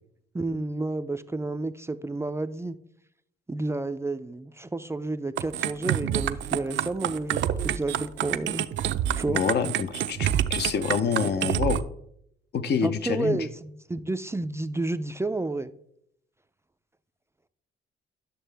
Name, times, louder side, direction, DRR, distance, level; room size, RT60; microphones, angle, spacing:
voice 1, 0.3-2.8 3.5-8.7 9.1-9.4 12.8-15.7, right 2 dB, 15° right, 10 dB, 0.4 m, -31 dB
sound 1, 5.4-11.8, right 10 dB, 70° right, 0.6 m, -27 dB
voice 2, 9.3-11.8 12.5-13.5, left 6 dB, 55° left, 10 dB, 0.8 m, -27 dB
11.0 x 6.5 x 3.4 m, 0.74 s
cardioid pair, 90°, 20 cm